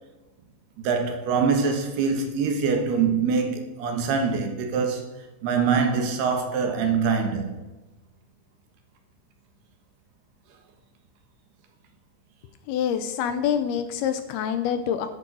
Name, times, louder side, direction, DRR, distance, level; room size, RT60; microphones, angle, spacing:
voice 1, 0.8-7.6, right 5 dB, 70° right, 3.3 m, -24 dB
voice 2, 12.7-15.1, left 8 dB, 75° left, 2.5 m, -26 dB
11.0 x 10.5 x 6.3 m
omnidirectional pair, 5.0 m